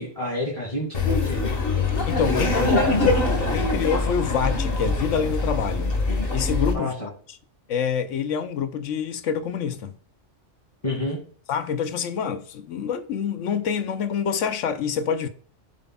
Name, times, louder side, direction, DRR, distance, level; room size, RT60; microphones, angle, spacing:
voice 1, 0.0-1.5 2.3-3.1 6.7-7.1 10.8-11.2, left 2 dB, 30° left, 2.4 m, -28 dB
Laughter, 0.9-6.7, left 3 dB, 50° left, 1.6 m, -23 dB
voice 2, 2.1-2.5 2.8-2.9 3.5-5.9 6.3-6.9 7.7-9.9 11.5-15.3, left 7 dB, 80° left, 1.0 m, -26 dB
7.6 x 7.5 x 2.3 m
omnidirectional pair, 1.3 m